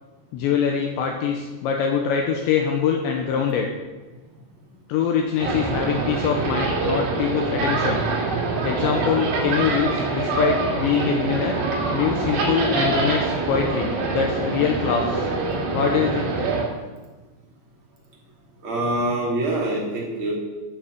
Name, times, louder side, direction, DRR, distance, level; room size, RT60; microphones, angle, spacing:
voice 1, 0.3-3.7 4.9-8.0 8.6-11.6 11.9-15.3 15.7-16.3, left 7 dB, 75° left, 2 dB, 3.0 m, -24 dB
sound 1, 5.4-16.6, right 3 dB, 80° right, 5.4 m, -24 dB
voice 2, 18.6-20.3, right 1 dB, 30° right, -3 dB, 3.2 m, -25 dB
13.5 x 7.1 x 7.4 m, 1.2 s
omnidirectional pair, 5.6 m